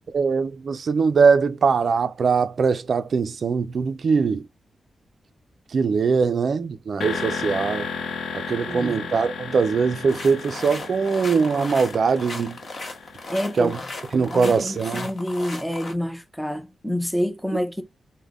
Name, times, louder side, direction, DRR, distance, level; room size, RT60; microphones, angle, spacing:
voice 1, 0.1-4.5 5.7-7.9 8.3-12.6 13.6-13.8 14.1-15.1, right 5 dB, 50° right, 0.4 m, -21 dB
sound 1, 7.0-14.8, left 5 dB, 65° left, 0.8 m, -34 dB
voice 2, 8.6-9.1 13.3-13.7 14.3-17.8, equal, ahead, 0.5 m, -28 dB
sound 2, 10.1-15.9, left 2 dB, 45° left, 1.1 m, -36 dB
5.3 x 2.1 x 3.5 m
wide cardioid pair, 160°, 0 cm